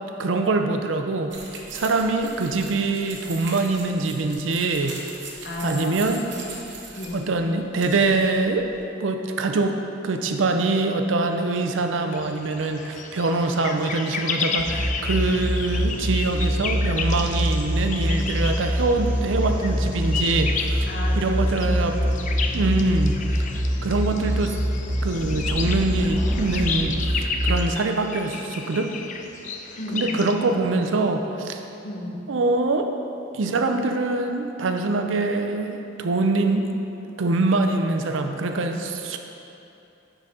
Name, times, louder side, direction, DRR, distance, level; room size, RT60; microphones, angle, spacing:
voice 1, 0.2-1.3 1.7-5.0 5.6-6.2 7.1-8.7 9.0-9.8 10.0-20.9 21.2-22.0 22.5-23.2 23.8-24.6 25.0-28.9 29.9-31.6 32.3-32.9 33.3-36.7 37.2-39.2, right 3 dB, 85° right, 5 dB, 0.5 m, -24 dB
sound 1, 1.3-8.8, right 4 dB, 65° right, 0.9 m, -41 dB
voice 2, 5.4-6.2 7.0-7.3 20.9-22.9 29.8-30.2 30.6-31.0 31.8-32.2, left 1 dB, 60° left, -2 dB, 1.0 m, -33 dB
sound 2, 12.1-30.3, left 5 dB, 40° left, 0.4 m, -33 dB
sound 3, 14.6-27.4, equal, 10° right, 0.9 m, -25 dB
9.9 x 4.0 x 3.7 m, 2.8 s
head